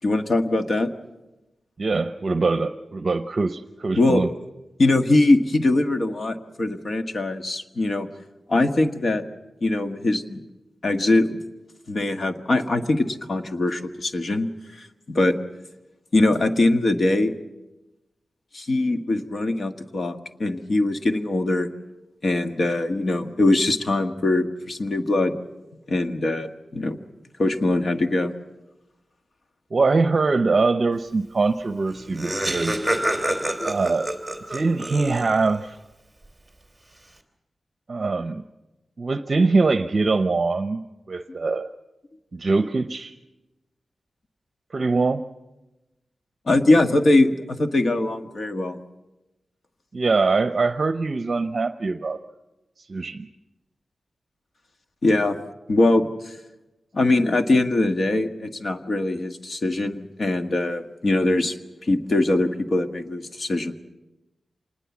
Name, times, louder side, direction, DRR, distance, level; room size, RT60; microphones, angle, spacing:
voice 1, 0.0-0.9 4.0-4.2 4.8-8.1 8.5-9.2 9.6-10.4 10.8-11.4 11.9-15.4 16.1-17.3 18.5-21.7 22.2-25.3 25.9-27.0 27.4-28.3 33.6-33.7 46.5-48.8 55.0-55.4 55.7-56.1 56.9-61.5 61.8-63.7, left 2 dB, 50° left, 7 dB, 1.5 m, -22 dB
voice 2, 1.8-4.3 29.7-32.8 33.6-34.1 34.5-35.8 37.9-38.4 39.0-41.7 42.3-43.1 44.7-45.3 49.9-52.2 52.8-53.3, right 3 dB, 45° right, 9 dB, 0.8 m, -23 dB
Laughter, 31.6-31.7 31.9-35.6, right 1 dB, 5° right, 3.0 m, -27 dB
26.0 x 20.0 x 7.2 m, 1.0 s
wide cardioid pair, 105°, 0 cm